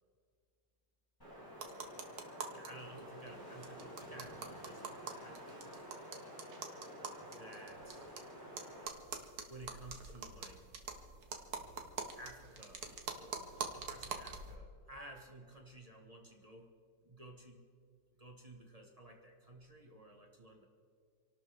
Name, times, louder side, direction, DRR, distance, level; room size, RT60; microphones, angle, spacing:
Wind, 1.2-8.9, equal, 10° left, 5.3 m, -50 dB
sound 1, 1.5-2.7 3.0-3.1 3.3-3.4 3.6-8.2 8.6-14.5, right 5 dB, 60° right, 1.7 m, -45 dB
voice 1, 2.5-5.9 7.3-8.1 9.5-10.6 12.1-16.7 17.0-17.6 18.2-20.7, right 1 dB, 20° right, 0 dB, 1.8 m, -54 dB
28.0 x 12.0 x 3.6 m, 2.2 s
omnidirectional pair, 2.0 m